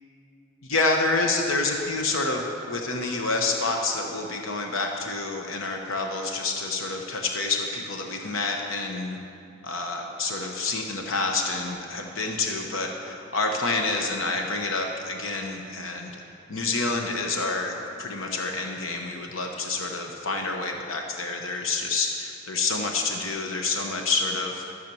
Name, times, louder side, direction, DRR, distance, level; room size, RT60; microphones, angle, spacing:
voice 1, 0.6-9.2 9.6-16.2 16.5-24.6, left 3 dB, 65° left, 2 dB, 1.0 m, -28 dB
13.5 x 6.7 x 6.9 m, 2.6 s
head